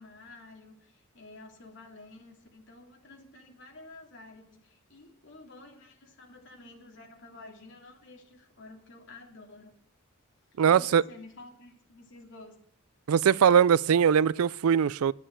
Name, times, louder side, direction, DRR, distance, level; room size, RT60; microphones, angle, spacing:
voice 1, 0.0-9.8 10.7-12.6, left 2 dB, 60° left, 2.8 m, -51 dB
voice 2, 10.6-11.0 13.1-15.1, right 7 dB, 80° right, 0.4 m, -21 dB
11.5 x 8.9 x 7.5 m
head